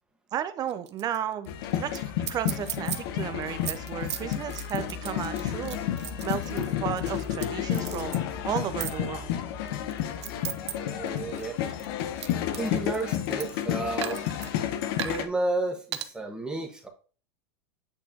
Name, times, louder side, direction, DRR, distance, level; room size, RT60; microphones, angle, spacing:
voice 1, 0.3-2.0 2.3-9.3, right 10 dB, 30° right, 12 dB, 0.6 m, -34 dB
sound 1, 0.7-1.2 1.4-1.5 1.9-2.0 2.2-3.0 3.4-7.5 7.7-8.2 8.8-9.0 9.7-10.7 11.1-13.6 14.0-14.5 15.0-15.3 15.9-16.1, right 11 dB, 90° right, 0.7 m, -36 dB
sound 2, 1.5-15.3, left 10 dB, 60° left, 0.9 m, -31 dB
voice 2, 10.7-11.6 12.6-14.2 15.0-16.9, right 2 dB, 5° right, 1 dB, 1.3 m, -32 dB
8.7 x 4.2 x 2.8 m, 0.40 s
supercardioid pair, 135°, 14 cm